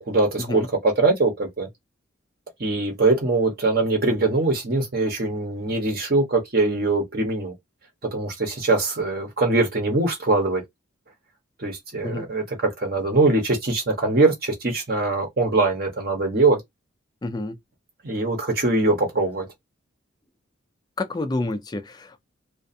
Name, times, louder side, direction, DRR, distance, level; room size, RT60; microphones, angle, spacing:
voice 1, 0.0-1.7 2.6-7.5 8.1-10.6 11.6-16.6 18.0-19.5, right 3 dB, 45° right, 0.8 m, -22 dB
voice 2, 17.2-17.6 21.0-22.2, left 2 dB, 20° left, 0.3 m, -29 dB
2.4 x 2.3 x 2.6 m
head